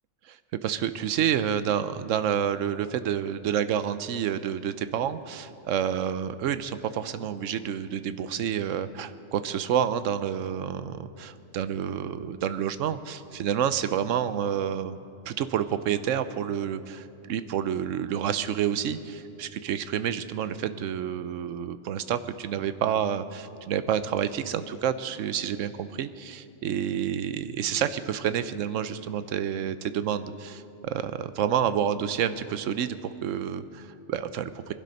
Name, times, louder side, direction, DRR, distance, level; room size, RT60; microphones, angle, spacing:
voice 1, 0.6-15.0 15.3-34.7, right 9 dB, 85° right, 12 dB, 1.0 m, -29 dB
21.5 x 12.0 x 5.3 m, 2.7 s
omnidirectional pair, 1.3 m